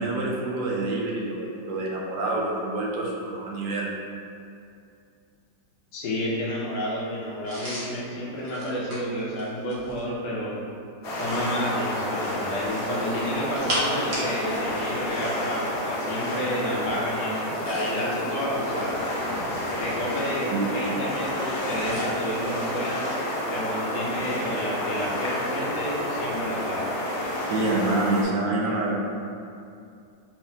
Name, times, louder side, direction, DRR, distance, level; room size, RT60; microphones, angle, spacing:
voice 1, 0.0-3.9 20.5-20.7 27.5-29.0, right 2 dB, 75° right, -3 dB, 1.1 m, -27 dB
voice 2, 5.9-10.6 11.2-19.0 19.8-23.1 23.5-26.9, equal, 80° left, -4 dB, 1.4 m, -30 dB
sound 1, 7.4-10.1 12.5-14.7 15.0-15.1 17.4-18.1 18.8-19.9 21.8-22.1, equal, 45° right, 1.0 m, -35 dB
sound 2, 11.0-28.2, left 1 dB, 65° left, 1.0 m, -30 dB
3.6 x 3.1 x 2.7 m, 2.4 s
omnidirectional pair, 1.9 m